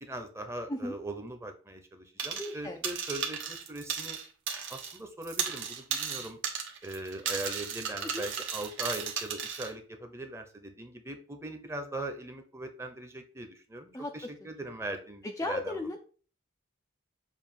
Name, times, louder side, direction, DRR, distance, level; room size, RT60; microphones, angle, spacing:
voice 1, 0.0-4.2 4.7-6.4 6.8-16.0, right 1 dB, 15° right, 5 dB, 0.8 m, -40 dB
sound 1, 2.2-2.6 2.8-5.0 5.2-9.7, right 7 dB, 60° right, 1.2 m, -35 dB
voice 2, 2.4-2.8 8.1-8.3 13.9-14.1 15.2-16.0, left 1 dB, 15° left, 3 dB, 0.4 m, -35 dB
7.1 x 2.4 x 5.5 m, 0.40 s
head